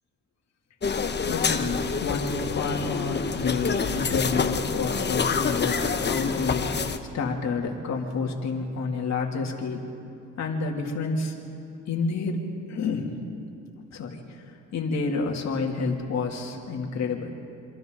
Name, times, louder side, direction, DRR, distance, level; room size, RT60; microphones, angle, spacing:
sound 1, 0.8-7.0, left 5 dB, 35° left, 1.2 m, -27 dB
voice 1, 1.2-9.8 10.4-11.4 11.9-12.4 12.7-13.1 13.9-14.4 14.7-17.3, left 4 dB, 60° left, 0 dB, 3.0 m, -29 dB
28.5 x 26.5 x 4.0 m, 2.7 s
cardioid pair, 90°, 30 cm